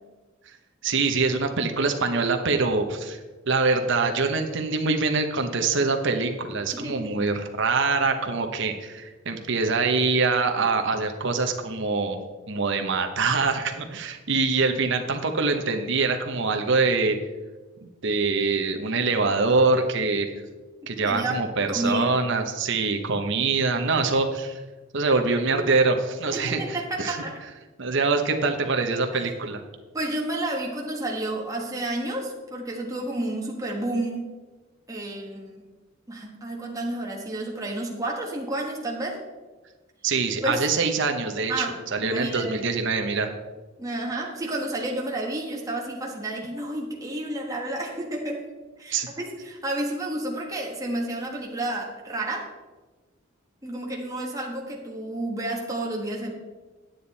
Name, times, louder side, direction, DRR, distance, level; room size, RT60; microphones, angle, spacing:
voice 1, 0.8-3.2 3.5-12.2 12.5-17.2 17.8-20.3 20.9-24.6 24.9-27.2 27.8-29.6 40.0-43.3 48.9-49.1, right 4 dB, 65° right, 5 dB, 1.0 m, -24 dB
voice 2, 6.7-7.1 21.0-22.2 26.3-27.3 29.1-29.3 29.9-34.3 34.9-35.6 36.1-39.2 40.4-40.6 41.5-42.6 43.8-48.5 48.8-52.5 53.6-56.3, right 1 dB, 15° right, -1 dB, 1.3 m, -31 dB
9.5 x 8.8 x 4.1 m, 1.3 s
head